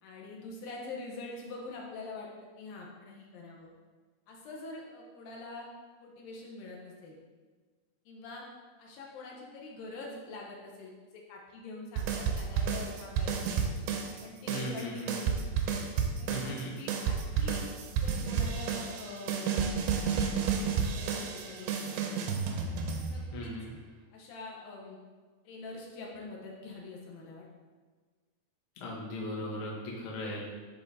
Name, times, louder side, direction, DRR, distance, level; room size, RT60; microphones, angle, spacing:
voice 1, 0.0-3.7 4.3-5.7 6.0-7.2 8.1-8.4 8.8-13.6 14.2-15.5 16.2-17.7 18.0-19.7 20.4-22.7 23.1-23.5 24.1-25.0 25.4-27.5, left 3 dB, 65° left, -2 dB, 2.6 m, -45 dB
sound 1, 12.0-14.2 14.5-23.5, right 6 dB, 80° right, 2.3 m, -31 dB
voice 2, 14.5-15.1 16.3-16.8 23.3-23.7 28.8-30.4, equal, 85° left, -4 dB, 1.1 m, -37 dB
10.5 x 3.9 x 4.2 m, 1.4 s
omnidirectional pair, 4.9 m